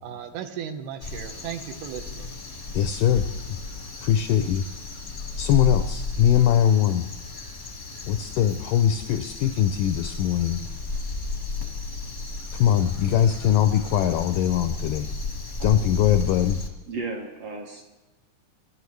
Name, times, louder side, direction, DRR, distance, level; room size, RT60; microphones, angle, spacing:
voice 1, 0.0-2.3, right 9 dB, 85° right, 7 dB, 2.9 m, -36 dB
Crow, 1.0-16.7, left 3 dB, 55° left, 0.7 m, -33 dB
voice 2, 2.7-3.2 3.5-3.6 4.0-4.6 5.4-7.0 8.1-10.6 12.5-15.1 15.6-16.6, left 10 dB, 85° left, 8 dB, 1.9 m, -21 dB
voice 3, 16.9-18.0, right 3 dB, 60° right, 1 dB, 1.7 m, -35 dB
23.5 x 11.5 x 3.2 m, 1.1 s
omnidirectional pair, 4.3 m